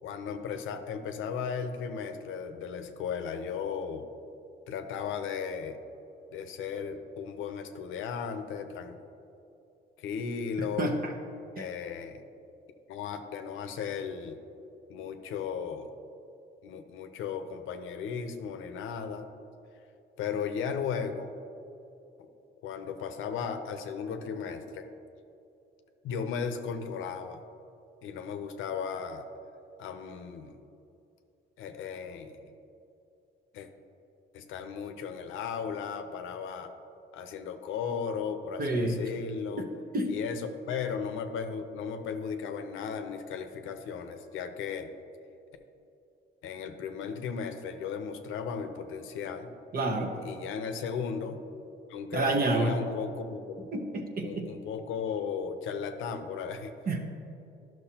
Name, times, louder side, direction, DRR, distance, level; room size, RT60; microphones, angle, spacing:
voice 1, 0.0-4.1 4.7-5.8 6.3-9.0 10.0-10.9 11.6-12.2 12.9-14.4 14.9-15.9 16.6-19.3 20.2-21.3 22.2-22.3 22.6-24.9 26.0-27.4 28.0-29.3 29.8-30.6 31.6-32.5 33.5-33.7 34.3-36.7 37.1-39.7 40.1-44.9 46.4-49.5 50.2-51.4 51.9-53.7 54.2-56.7, left 6 dB, 90° left, 7 dB, 0.6 m, -36 dB
voice 2, 10.8-11.1 38.6-39.0 39.9-40.1 49.7-50.1 52.1-52.8 53.7-54.5 56.9-57.0, right 2 dB, 50° right, 4 dB, 1.0 m, -28 dB
12.0 x 6.1 x 2.9 m, 2.8 s
cardioid pair, 90°, 20 cm